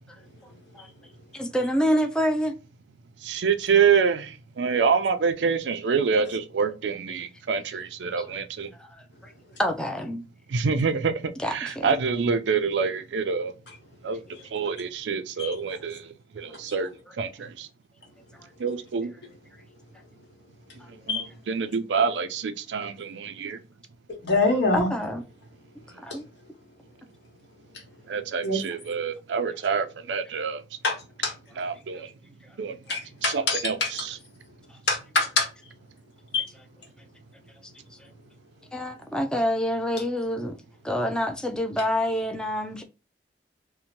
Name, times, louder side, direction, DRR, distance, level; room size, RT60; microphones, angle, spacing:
voice 1, 1.3-2.5 8.2-8.3 8.8-9.3 9.6-10.2 11.4-11.9 24.7-25.2 26.0-26.2 38.7-40.6 40.8-42.8, equal, 5° left, 0.3 m, -27 dB
voice 2, 3.2-8.7 10.5-13.5 14.0-17.7 18.6-19.1 20.9-23.6 28.1-30.8 31.6-32.1 32.6-32.8 33.2-34.2, right 5 dB, 90° right, 0.4 m, -27 dB
voice 3, 24.2-24.9 28.4-28.6 30.8-30.9 31.2-31.3 32.9-33.9 34.9-35.5 36.3-36.5, left 3 dB, 80° left, 1.1 m, -24 dB
2.7 x 2.1 x 2.9 m
head